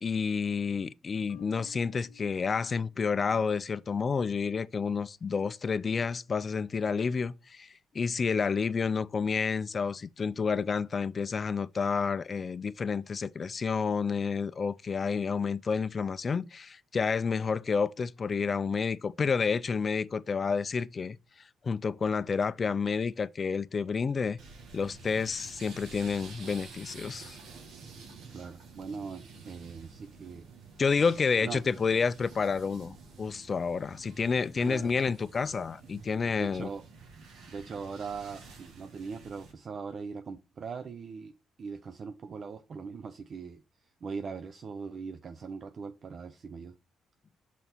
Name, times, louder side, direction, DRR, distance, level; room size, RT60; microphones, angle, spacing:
voice 1, 0.0-7.7 7.9-21.2 21.6-24.4 24.7-27.4 30.8-36.7, left 5 dB, 40° left, 0.3 m, -30 dB
Marimba xylophone, 1.3-3.3, left 15 dB, 60° left, 0.8 m, -54 dB
sound 1, 24.4-39.5, right 4 dB, 80° right, 1.5 m, -50 dB
voice 2, 28.3-30.5 31.4-31.6 34.6-34.9 36.0-36.1 36.4-36.8 37.5-41.3 41.6-43.6 44.0-46.7, right 5 dB, 50° right, 0.5 m, -40 dB
5.9 x 4.0 x 4.3 m
cardioid pair, 90°, 0 cm